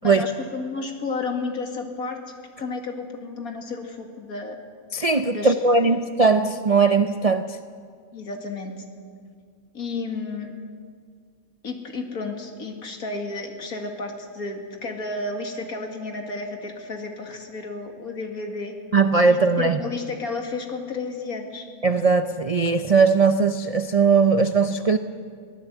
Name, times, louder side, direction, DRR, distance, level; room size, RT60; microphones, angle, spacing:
voice 1, 0.0-2.2 2.6-4.6 5.3-6.0 8.1-8.8 9.7-10.5 11.6-18.7 19.2-21.7, left 3 dB, 70° left, 3 dB, 2.6 m, -32 dB
voice 2, 4.9-7.6 18.9-19.8 21.8-25.0, right 4 dB, 50° right, 9 dB, 0.4 m, -19 dB
23.5 x 16.0 x 8.2 m, 2.1 s
omnidirectional pair, 1.6 m